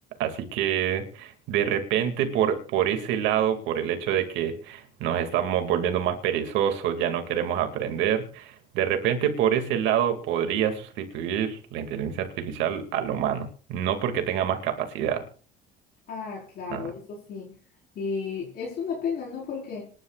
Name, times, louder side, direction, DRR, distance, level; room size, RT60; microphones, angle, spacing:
voice 1, 0.2-15.2 16.7-16.9, right 9 dB, 75° right, 6 dB, 2.4 m, -26 dB
voice 2, 16.1-17.5 17.9-19.8, left 5 dB, 55° left, -3 dB, 4.8 m, -33 dB
26.0 x 11.5 x 2.5 m, 0.44 s
cardioid pair, 115°, 19 cm